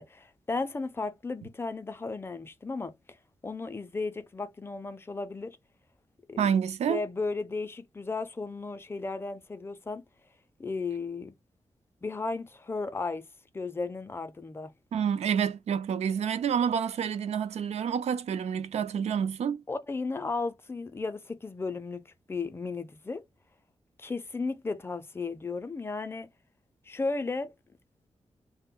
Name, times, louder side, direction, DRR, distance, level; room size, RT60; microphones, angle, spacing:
voice 1, 0.0-2.9 3.4-5.6 6.3-6.5 6.9-10.0 10.6-11.3 12.0-13.2 13.5-14.7 19.7-22.0 22.3-23.2 24.0-26.3 26.9-27.5, left 3 dB, 20° left, 0.4 m, -34 dB
voice 2, 6.4-7.0 14.9-19.6, right 7 dB, 85° right, 0.4 m, -28 dB
2.2 x 2.1 x 3.7 m
wide cardioid pair, 110°, 11 cm